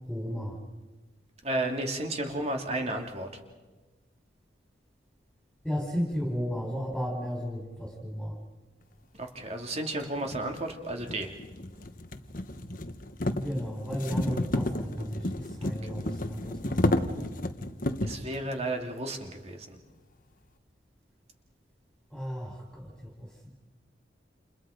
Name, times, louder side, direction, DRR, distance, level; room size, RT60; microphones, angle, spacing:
voice 1, 0.1-0.6 5.6-8.4 13.3-17.1 22.1-23.5, equal, ahead, -2 dB, 4.3 m, -34 dB
voice 2, 1.4-3.4 9.1-11.3 15.6-15.7 18.0-19.8, right 1 dB, 35° right, 3 dB, 2.7 m, -33 dB
sound 1, 9.4-9.5 10.2-18.3, left 1 dB, 45° left, 1.2 m, -31 dB
29.5 x 29.5 x 5.2 m, 1.2 s
head